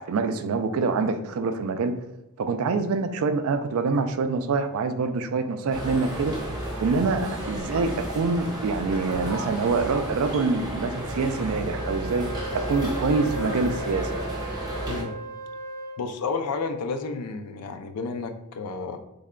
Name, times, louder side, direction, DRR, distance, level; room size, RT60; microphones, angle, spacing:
voice 1, 0.0-1.9 2.4-6.4 6.8-12.3 12.5-14.1, right 4 dB, 65° right, 9 dB, 0.3 m, -25 dB
sound 1, 5.7-15.0, right 1 dB, 20° right, 0.7 m, -32 dB
Wind instrument woodwind instrument, 11.7-16.1, equal, 45° left, 1.4 m, -36 dB
voice 2, 16.0-19.0, left 4 dB, 85° left, 7 dB, 0.4 m, -31 dB
3.3 x 2.2 x 3.6 m, 0.94 s
head